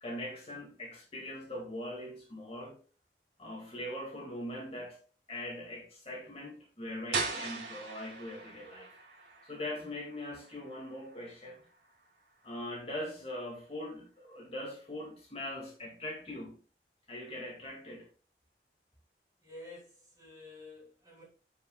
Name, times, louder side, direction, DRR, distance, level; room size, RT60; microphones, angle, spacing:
voice 1, 0.0-2.8 3.4-5.0 5.3-9.0 9.4-11.6 12.4-16.6 17.1-18.1, left 1 dB, 35° left, 2.1 m, -41 dB
sound 1, 7.1-12.8, right 4 dB, 85° right, 2.2 m, -41 dB
voice 2, 19.4-21.2, left 2 dB, 20° right, 3.3 m, -50 dB
11.0 x 5.3 x 2.3 m
head